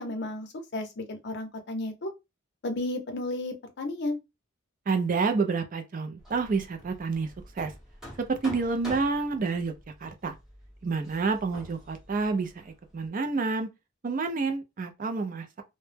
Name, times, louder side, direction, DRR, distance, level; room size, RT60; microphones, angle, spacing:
voice 1, 0.0-2.1 2.6-4.2, left 2 dB, 55° left, 0.6 m, -33 dB
voice 2, 4.9-7.7 8.2-9.7 10.0-10.4 10.8-13.7 14.0-15.6, right 4 dB, 40° right, 0.4 m, -29 dB
Hammer, 6.2-13.1, equal, 5° right, 0.8 m, -47 dB
2.1 x 2.0 x 3.2 m
head